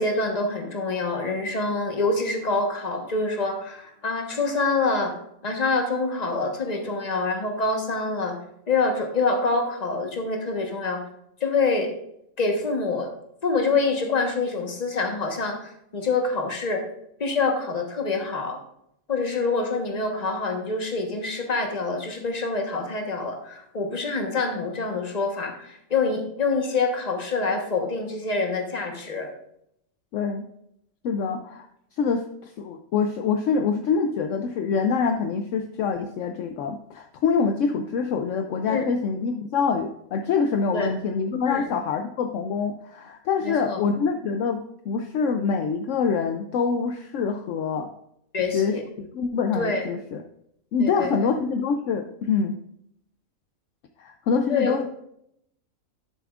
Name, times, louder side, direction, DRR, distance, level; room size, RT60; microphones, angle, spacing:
voice 1, 0.0-5.1 5.4-8.4 8.7-11.0 11.4-11.9 12.4-13.1 13.4-16.8 17.2-18.6 19.1-29.3 38.7-38.9 40.7-40.9 41.5-41.6 43.4-43.8 48.3-48.8 49.5-49.9 50.8-51.1 54.5-54.8, left 3 dB, 30° left, 3 dB, 1.2 m, -26 dB
voice 2, 30.1-30.4 31.0-31.7 32.0-47.9 48.5-50.2 50.7-52.5 54.0-54.8, left 5 dB, 70° left, 6 dB, 0.9 m, -25 dB
11.0 x 6.9 x 2.4 m, 0.75 s
omnidirectional pair, 1.4 m